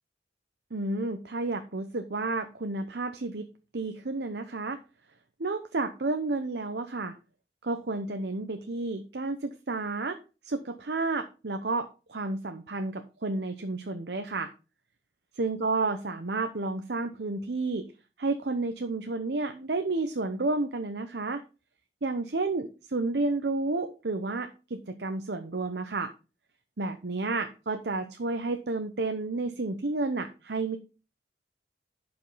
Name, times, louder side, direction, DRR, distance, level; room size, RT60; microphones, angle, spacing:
voice 1, 0.7-3.5 3.7-4.8 5.4-7.1 7.6-10.2 10.4-14.5 15.4-17.9 18.2-21.4 22.0-26.1 26.8-30.8, right 3 dB, 65° right, 7 dB, 0.8 m, -31 dB
11.5 x 5.3 x 4.0 m, 0.32 s
head